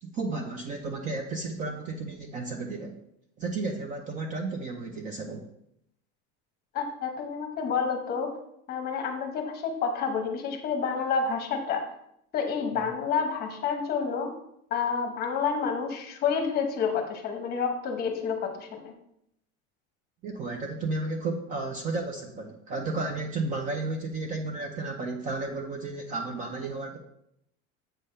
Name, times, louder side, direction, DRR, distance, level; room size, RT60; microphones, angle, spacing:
voice 1, 0.0-2.9 3.4-5.5 12.8-12.9 20.2-27.0, right 3 dB, 25° right, 4 dB, 0.5 m, -33 dB
voice 2, 6.7-8.4 8.7-11.8 12.3-14.3 14.7-18.9, left 6 dB, 30° left, 4 dB, 0.9 m, -29 dB
7.5 x 3.4 x 5.5 m, 0.76 s
cardioid pair, 170°, 32 cm